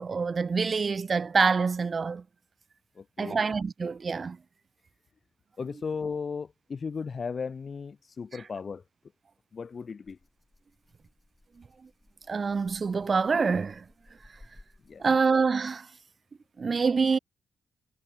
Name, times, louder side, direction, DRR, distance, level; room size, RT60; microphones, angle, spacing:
voice 1, 0.0-2.2 3.2-4.4 12.3-13.8 15.0-15.9 16.6-17.2, right 5 dB, 35° right, 1.0 m, -26 dB
voice 2, 3.0-3.4 5.6-8.8 9.5-10.2 14.9-15.0, left 5 dB, 40° left, 1.7 m, -36 dB
Rattle (instrument), 10.0-15.4, left 1 dB, 10° left, 6.6 m, -59 dB
wide cardioid pair, 140°, 0 cm